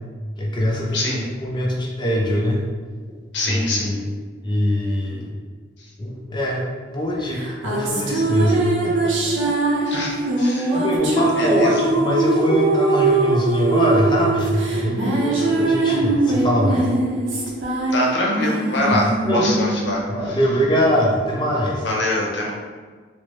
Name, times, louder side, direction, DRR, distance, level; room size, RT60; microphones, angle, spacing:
voice 1, 0.4-2.6 3.5-4.0 4.4-5.3 6.0-6.6 6.9-9.5 10.7-16.9 18.9-19.4 20.1-21.9, equal, 25° left, -2 dB, 0.5 m, -22 dB
voice 2, 0.9-1.2 3.3-4.0 9.9-10.8 11.4-11.8 17.9-20.4 21.8-22.5, left 1 dB, 75° left, -3 dB, 0.7 m, -24 dB
sound 1, 7.3-21.0, right 2 dB, 90° right, 0.6 m, -22 dB
3.9 x 2.1 x 3.1 m, 1.5 s
head